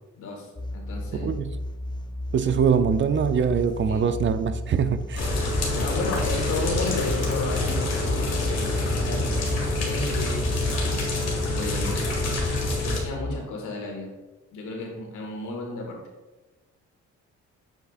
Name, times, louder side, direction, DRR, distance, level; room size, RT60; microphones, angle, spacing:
voice 1, 0.2-0.5 0.7-1.3 3.9-4.1 5.4-10.5 11.5-12.0 12.8-14.1 14.5-16.0, left 3 dB, 85° left, 1 dB, 1.8 m, -33 dB
sound 1, 0.6-13.4, left 1 dB, 15° left, 0.4 m, -34 dB
voice 2, 1.1-1.6 2.3-5.4, right 7 dB, 40° right, 11 dB, 0.4 m, -23 dB
sound 2, 5.2-13.0, left 2 dB, 55° left, 1.9 m, -26 dB
7.3 x 6.5 x 2.4 m, 1.1 s
cardioid pair, 90°, 30 cm